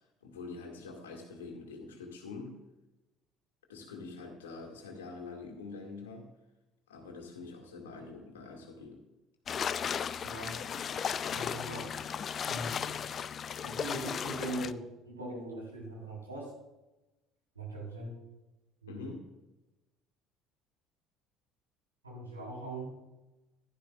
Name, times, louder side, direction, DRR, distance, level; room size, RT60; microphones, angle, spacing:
voice 1, 0.2-2.6 3.7-6.3 6.9-9.0 18.9-19.2, left 4 dB, 75° left, 1 dB, 2.0 m, -45 dB
sound 1, 9.5-14.7, left 7 dB, 40° left, 0.4 m, -35 dB
voice 2, 10.2-10.6 11.3-11.9 12.4-12.8 13.6-16.5 17.6-18.2 18.8-19.1 22.0-22.9, right 1 dB, 85° right, -4 dB, 3.7 m, -40 dB
15.5 x 11.5 x 2.4 m, 1.0 s
figure-of-eight pair, 60°, 0 cm